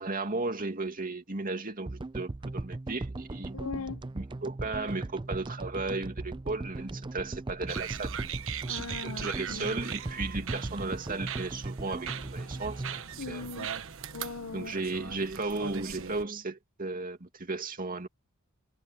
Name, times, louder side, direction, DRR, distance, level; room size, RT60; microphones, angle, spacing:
voice 1, 0.0-3.6 4.1-8.1 9.0-13.4 14.5-18.1, right 3 dB, 40° right, 2.5 m, -35 dB
sound 1, 1.9-14.2, right 2 dB, 20° right, 0.5 m, -38 dB
voice 2, 3.5-4.0 8.7-9.7 13.2-13.7 14.1-14.7, left 4 dB, 70° left, 0.9 m, -39 dB
sound 2, 7.7-16.2, right 8 dB, 65° right, 1.3 m, -40 dB
head